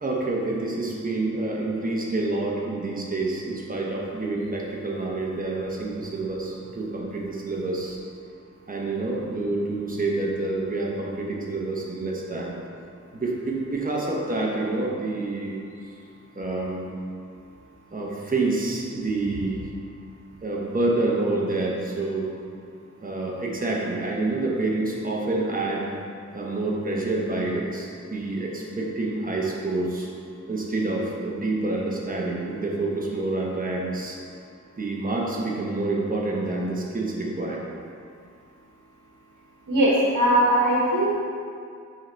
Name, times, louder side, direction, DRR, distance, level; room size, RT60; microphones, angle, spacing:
voice 1, 0.0-8.0 8.7-12.6 13.1-15.6 15.8-16.0 16.3-16.9 17.9-19.7 20.4-22.3 23.0-25.9 26.3-30.1 30.5-34.2 34.8-37.7, right 2 dB, 30° right, -2 dB, 0.9 m, -27 dB
voice 2, 39.7-41.1, right 1 dB, 60° right, -7 dB, 1.3 m, -20 dB
5.6 x 3.9 x 4.4 m, 2.3 s
wide cardioid pair, 125°, 30 cm